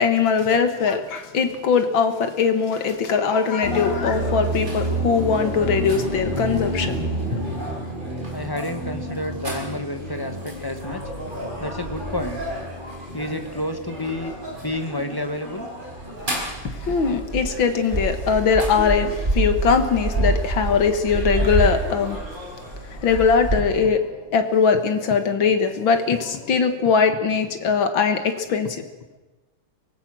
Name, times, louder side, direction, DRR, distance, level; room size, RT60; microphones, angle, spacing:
voice 1, 0.0-7.5 16.6-22.2 22.8-24.1 24.3-28.8, left 6 dB, 65° left, 8 dB, 2.3 m, -21 dB
sound 1, 3.6-23.6, right 2 dB, 20° right, 5.1 m, -28 dB
voice 2, 8.3-11.0 11.6-12.4 13.1-14.3 14.6-15.7, left 1 dB, 15° left, 7 dB, 1.0 m, -29 dB
23.5 x 19.0 x 6.3 m, 1.1 s
omnidirectional pair, 2.4 m